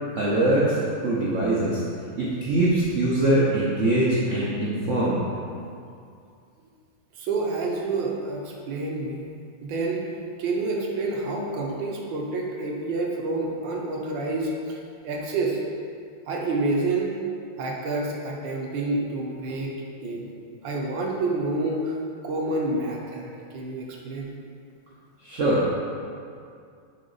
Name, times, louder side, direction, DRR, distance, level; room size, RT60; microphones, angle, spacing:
voice 1, 0.1-1.8 2.2-5.2 25.2-25.6, right 1 dB, 85° right, -7 dB, 0.6 m, -22 dB
voice 2, 7.1-9.3 9.6-10.0 10.4-15.6 16.3-17.1 17.6-19.7 20.0-20.3 20.6-22.0 22.2-24.3, right 2 dB, 70° right, -1 dB, 1.3 m, -28 dB
6.5 x 3.9 x 3.9 m, 2.4 s
omnidirectional pair, 2.4 m